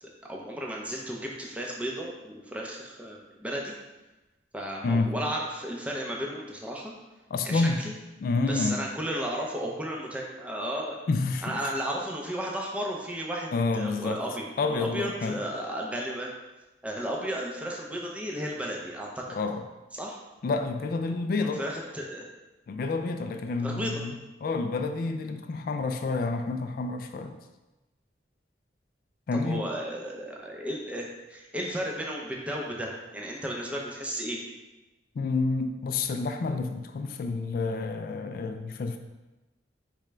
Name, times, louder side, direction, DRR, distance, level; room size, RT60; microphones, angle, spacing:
voice 1, 0.0-3.7 4.5-6.9 7.5-7.9 8.5-11.0 11.4-16.3 16.8-19.3 19.9-20.2 21.4-22.2 23.6-24.0 29.3-34.4, equal, 10° right, -2 dB, 0.5 m, -34 dB
voice 2, 7.3-7.8 8.2-8.8 11.1-11.7 13.5-14.2 14.6-15.4 19.3-19.6 20.4-21.6 22.7-24.1 24.4-27.4 29.3-29.7 35.2-39.0, left 3 dB, 55° left, 7 dB, 0.3 m, -29 dB
4.9 x 3.3 x 3.2 m, 1.1 s
head